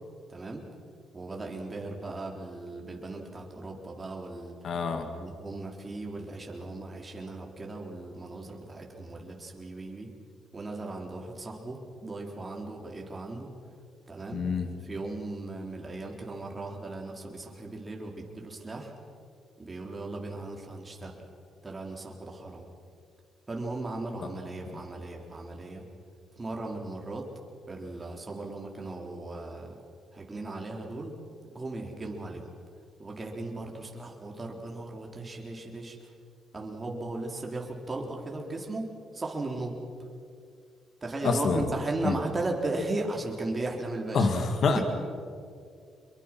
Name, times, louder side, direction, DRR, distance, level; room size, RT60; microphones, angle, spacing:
voice 1, 0.3-0.6 1.1-4.8 5.1-10.1 10.5-13.5 14.1-14.4 14.8-18.9 19.6-21.2 21.6-22.7 23.5-25.8 26.4-27.3 27.7-29.8 30.1-31.1 31.5-32.5 33.0-36.1 36.5-39.8 41.0-44.3 44.7-44.8, right 2 dB, 25° right, 0 dB, 3.9 m, -37 dB
voice 2, 4.6-5.1 14.3-14.7 41.2-41.6 42.0-42.2 44.1-44.8, left 4 dB, 60° left, 6 dB, 2.1 m, -26 dB
26.0 x 22.5 x 6.2 m, 2.3 s
cardioid pair, 90°, 0 cm